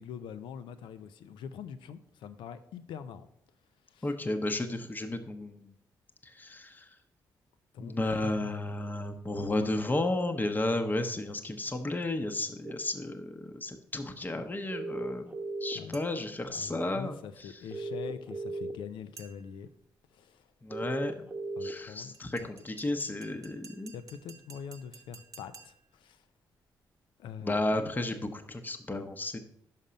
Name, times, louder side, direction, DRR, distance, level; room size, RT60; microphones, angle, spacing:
voice 1, 0.0-3.3 3.9-4.1 7.7-8.5 15.7-16.0 16.5-19.7 20.1-20.5 21.6-22.5 23.9-26.2 27.2-27.6, left 7 dB, 85° left, 12 dB, 0.5 m, -44 dB
voice 2, 4.0-5.7 6.2-6.9 7.8-15.3 15.6-17.2 20.6-21.3 21.6-23.9 27.4-29.4, left 2 dB, 20° left, 7 dB, 0.8 m, -33 dB
sound 1, 12.6-12.7 14.7-15.9 17.7-18.7 20.7-21.7, right 2 dB, 20° right, 1.0 m, -36 dB
sound 2, 15.9-16.4 19.2-19.7 22.1-26.0, right 4 dB, 45° right, 0.9 m, -54 dB
5.6 x 5.3 x 5.1 m, 0.72 s
cardioid pair, 65°, 8 cm